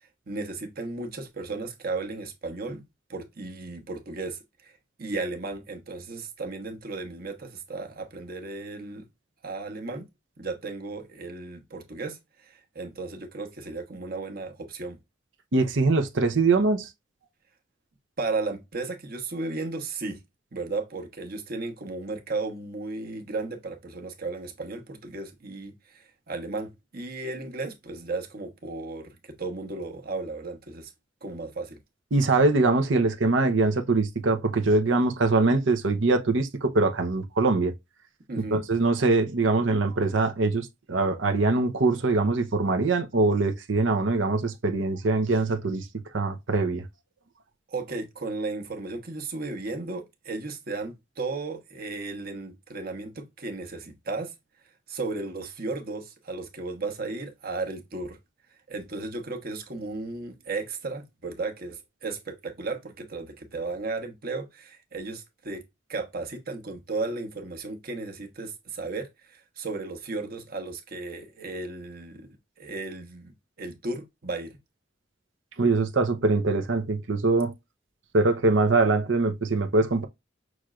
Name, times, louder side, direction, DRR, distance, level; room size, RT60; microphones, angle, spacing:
voice 1, 0.3-2.8 3.1-4.7 5.0-9.1 9.4-10.1 10.4-15.0 18.2-20.2 20.5-30.9 31.2-31.8 38.3-38.6 47.7-54.3 54.9-58.2 58.7-65.6 65.9-72.3 72.6-74.6, right 3 dB, 55° right, 1.1 m, -35 dB
voice 2, 15.5-16.9 32.1-37.7 38.5-45.9 46.1-46.9 75.6-77.5 78.1-80.0, right 3 dB, 85° right, 0.8 m, -23 dB
6.1 x 3.1 x 2.4 m
head